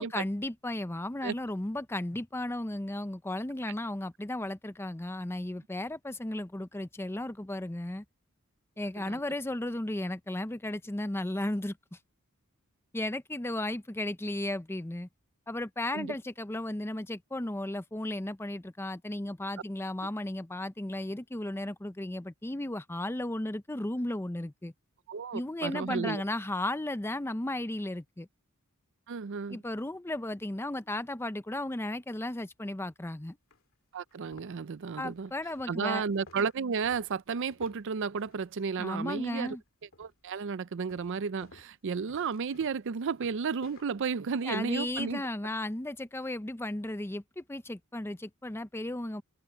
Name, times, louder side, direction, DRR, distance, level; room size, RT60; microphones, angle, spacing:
voice 1, 0.0-8.0 8.8-11.8 12.9-15.1 15.5-24.7 25.3-28.3 29.5-33.4 35.0-36.0 38.8-39.6 44.4-49.2, left 1 dB, 10° left, 0.6 m, -35 dB
voice 2, 25.1-26.2 29.1-29.6 33.9-35.3 35.7-39.6 40.0-45.2, right 5 dB, 60° right, 0.5 m, -33 dB
sound 1, 33.5-33.6 34.1-39.6 39.9-40.3 40.9-45.3, left 2 dB, 65° left, 2.6 m, -56 dB
head